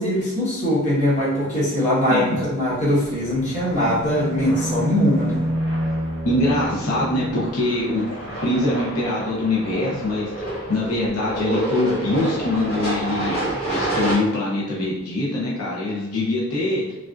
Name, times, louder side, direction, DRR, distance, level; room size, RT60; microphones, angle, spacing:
voice 1, 0.0-5.4, equal, 30° left, -9 dB, 1.2 m, -21 dB
sound 1, 3.0-7.5, equal, 45° right, 0.3 m, -28 dB
sound 2, 3.4-14.1, right 1 dB, 65° left, 1.4 m, -30 dB
voice 2, 6.2-8.1 8.4-10.3 10.7-13.4 13.7-16.8, left 2 dB, 80° left, -5 dB, 0.7 m, -23 dB
3.3 x 2.5 x 2.4 m, 1.1 s
head